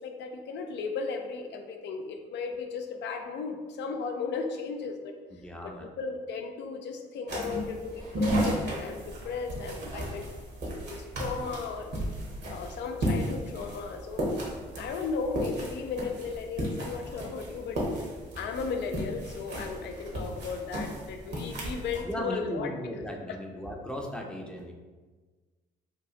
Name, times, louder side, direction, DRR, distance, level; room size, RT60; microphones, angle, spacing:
voice 1, 0.0-5.1 5.6-10.3 10.7-11.9 12.5-14.4 14.7-17.8 18.4-22.7 23.3-23.4, left 5 dB, 60° left, 5 dB, 0.5 m, -35 dB
voice 2, 5.4-5.9 22.0-24.7, equal, 5° left, 0 dB, 0.6 m, -37 dB
sound 1, 7.3-22.0, right 1 dB, 60° right, 1.1 m, -34 dB
3.0 x 2.4 x 3.7 m, 1.4 s
hypercardioid pair, 60°, 20 cm